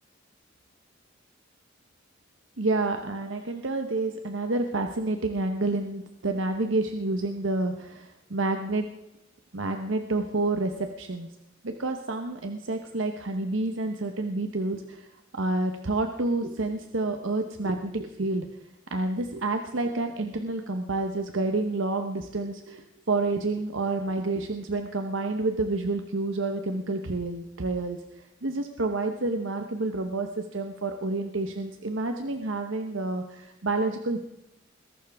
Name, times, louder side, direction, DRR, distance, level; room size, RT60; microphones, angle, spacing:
voice 1, 2.6-8.8 9.5-11.3 11.6-15.1 15.3-18.5 18.9-34.2, right 2 dB, 75° right, 5 dB, 1.0 m, -29 dB
21.0 x 12.0 x 3.5 m, 0.88 s
head